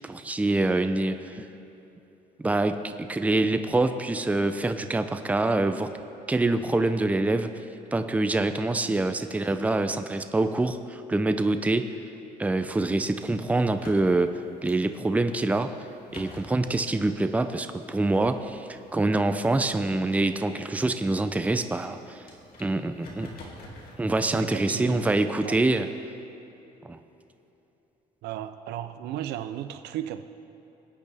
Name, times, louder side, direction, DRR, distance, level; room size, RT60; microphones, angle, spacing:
voice 1, 0.0-1.4 2.4-5.9 6.3-7.5 7.9-11.9 12.4-15.7 16.1-22.2 22.6-23.3 24.0-25.9 26.8-27.0, right 2 dB, 10° right, 8 dB, 0.5 m, -25 dB
sound 1, 12.5-25.5, left 1 dB, 60° left, 2.5 m, -51 dB
voice 2, 24.3-25.1 25.4-25.6 28.2-30.2, right 11 dB, 80° right, 11 dB, 0.7 m, -35 dB
22.5 x 8.8 x 3.5 m, 3.0 s
cardioid pair, 110°, 17 cm